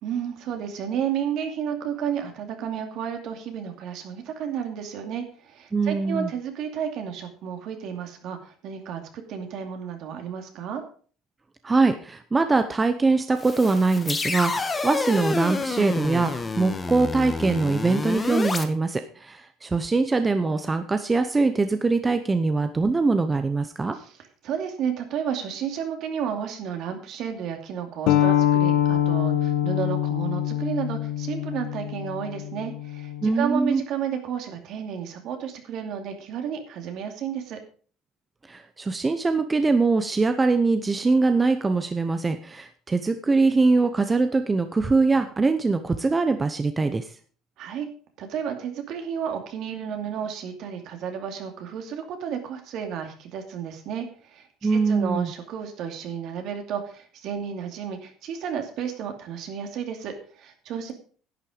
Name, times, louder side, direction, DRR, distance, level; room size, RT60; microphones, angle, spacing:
voice 1, 0.0-10.8 24.4-37.6 47.6-47.9 48.2-60.9, right 8 dB, 60° right, 5 dB, 2.5 m, -32 dB
voice 2, 5.7-6.3 11.6-24.0 33.2-33.8 38.5-47.1 54.6-55.3, right 3 dB, 20° right, 9 dB, 0.8 m, -23 dB
sound 1, 13.4-18.6, left 3 dB, 20° left, 1.2 m, -29 dB
sound 2, 28.1-33.3, left 11 dB, 80° left, 1.2 m, -24 dB
11.0 x 9.0 x 5.1 m, 0.43 s
cardioid pair, 130°, 0 cm